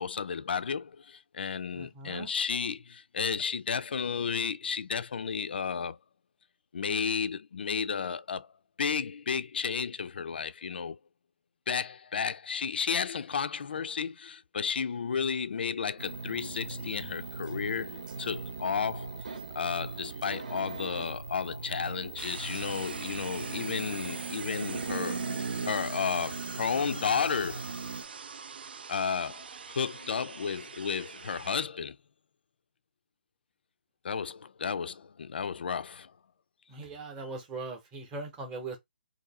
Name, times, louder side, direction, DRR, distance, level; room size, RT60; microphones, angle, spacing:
voice 1, 0.0-6.0 6.7-8.5 8.8-11.0 11.7-25.2 25.7-27.7 28.9-32.0 34.0-36.1, left 6 dB, 75° left, 0.3 m, -33 dB
voice 2, 1.7-2.3 36.7-38.8, right 3 dB, 10° right, 0.7 m, -40 dB
sound 1, 16.0-28.0, right 4 dB, 55° right, 0.8 m, -39 dB
sound 2, 22.2-31.6, right 6 dB, 75° right, 0.4 m, -43 dB
2.6 x 2.4 x 4.0 m
hypercardioid pair, 170°, 5 cm